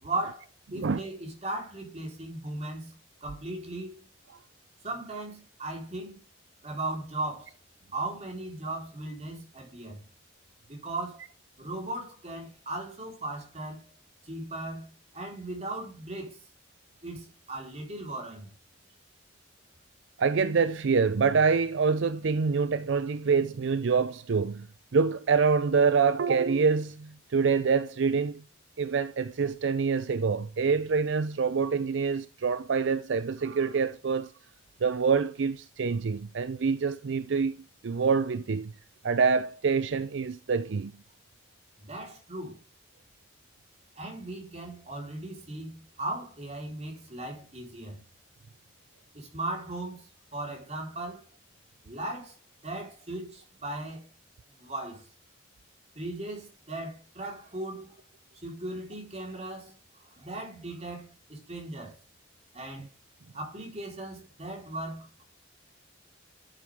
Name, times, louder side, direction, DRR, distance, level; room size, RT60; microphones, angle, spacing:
voice 1, 0.0-3.0 3.2-4.0 4.8-6.2 6.6-7.5 7.9-10.0 10.7-11.2 11.6-13.9 14.2-16.4 17.0-18.5 41.8-42.6 44.0-48.0 49.1-51.2 51.8-52.3 52.6-54.1 54.6-55.0 55.9-58.0 58.3-59.7 60.0-61.9 62.5-62.9 63.3-65.2, right 2 dB, 30° right, 4.0 m, -37 dB
voice 2, 20.2-24.7 24.9-28.4 28.8-34.3 34.8-37.6 37.8-38.7 39.0-40.9, right 5 dB, 65° right, 0.5 m, -26 dB
12.0 x 7.5 x 3.5 m
head